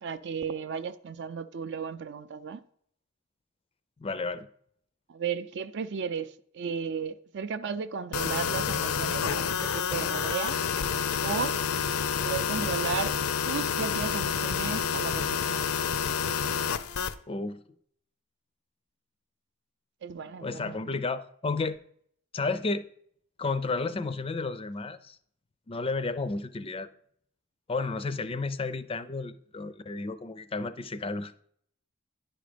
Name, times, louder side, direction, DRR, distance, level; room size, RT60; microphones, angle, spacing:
voice 1, 0.0-2.6 5.1-10.6 11.2-11.6 12.2-13.1 13.5-15.7 20.0-21.0, right 6 dB, 55° right, 0.4 m, -34 dB
voice 2, 4.0-4.5 17.3-17.6 20.4-21.8 22.3-22.8 23.4-25.2 25.7-26.9 27.7-31.4, left 3 dB, 25° left, 0.4 m, -32 dB
sound 1, 8.1-17.1, left 7 dB, 75° left, 0.5 m, -29 dB
10.5 x 5.1 x 5.0 m
head